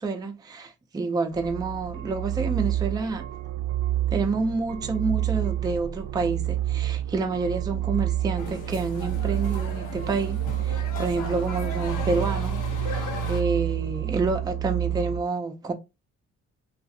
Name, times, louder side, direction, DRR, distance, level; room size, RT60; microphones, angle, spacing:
voice 1, 0.0-3.3 4.1-15.7, right 3 dB, 15° right, 0.4 m, -28 dB
sound 1, 1.3-15.2, right 12 dB, 75° right, 0.5 m, -29 dB
sound 2, 8.4-13.4, left 4 dB, 90° left, 0.9 m, -36 dB
3.0 x 2.4 x 2.7 m
cardioid pair, 90°, 30 cm